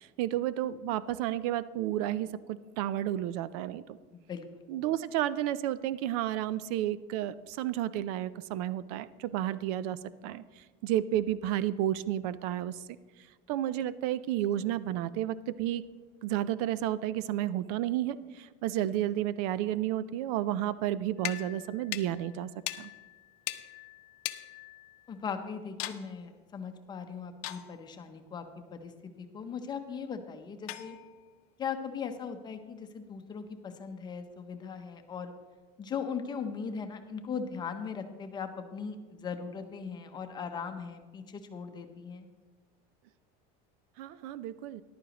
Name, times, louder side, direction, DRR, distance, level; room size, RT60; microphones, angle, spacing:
voice 1, 0.0-4.0 4.7-12.8 13.5-15.8 16.2-22.5 22.8-22.9 44.0-44.8, right 12 dB, 75° right, 17 dB, 0.5 m, -32 dB
voice 2, 4.1-4.7 25.1-28.4 28.7-28.9 29.2-31.0 31.6-35.3 35.8-42.3, left 6 dB, 20° left, 7 dB, 0.7 m, -39 dB
sound 1, 21.2-25.3 25.8-26.1 27.4-28.0 30.7-31.3, left 16 dB, 70° left, 0.6 m, -41 dB
14.0 x 11.0 x 3.0 m, 1.4 s
cardioid pair, 165°, 19 cm